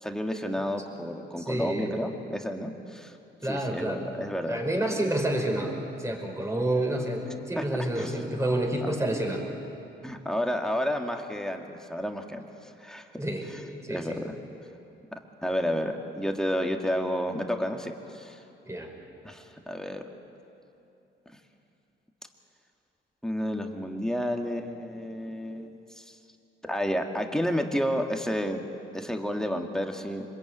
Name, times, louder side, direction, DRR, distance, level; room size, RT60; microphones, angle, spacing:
voice 1, 0.0-3.2 3.4-4.6 7.6-7.7 8.0-8.5 8.8-8.9 10.0-13.1 13.9-14.3 15.4-18.4 19.2-20.0 23.2-25.7 26.0-26.1 26.6-28.6 28.9-30.2, equal, 5° left, 3 dB, 2.1 m, -31 dB
voice 2, 1.4-2.0 3.4-4.0 4.5-9.4 13.2-13.5 13.8-14.2 18.6-18.9, right 1 dB, 15° right, 2 dB, 5.1 m, -29 dB
26.0 x 21.5 x 9.3 m, 2.8 s
cardioid pair, 90°, 20 cm